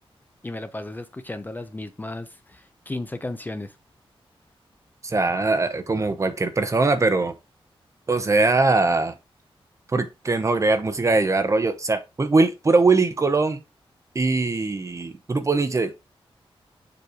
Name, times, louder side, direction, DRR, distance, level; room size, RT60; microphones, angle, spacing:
voice 1, 0.4-3.8, left 2 dB, 20° left, 0.6 m, -34 dB
voice 2, 5.0-7.3 8.1-9.1 9.9-13.6 14.1-15.9, right 3 dB, 30° right, 0.8 m, -21 dB
6.9 x 3.2 x 5.0 m
wide cardioid pair, 125°, 10 cm